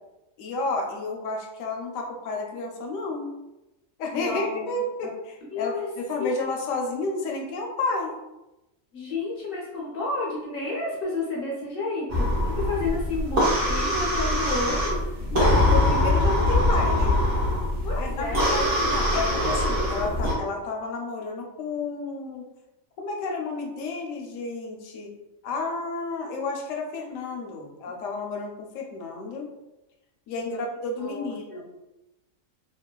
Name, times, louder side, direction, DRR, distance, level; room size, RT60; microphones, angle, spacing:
voice 1, 0.4-3.3 4.0-8.2 15.3-17.2 18.0-22.5 23.0-25.1 25.4-29.5 30.3-31.6, left 3 dB, 75° left, 1 dB, 0.9 m, -31 dB
voice 2, 4.1-5.1 5.5-5.9 6.2-6.3 8.9-15.2 15.5-16.2 17.8-19.0 27.9-28.0 30.4-30.6 31.0-31.6, left 3 dB, 60° left, -4 dB, 0.6 m, -32 dB
sound 1, 12.1-20.3, left 1 dB, 60° right, 1.1 m, -23 dB
2.9 x 2.2 x 2.2 m, 0.97 s
omnidirectional pair, 1.4 m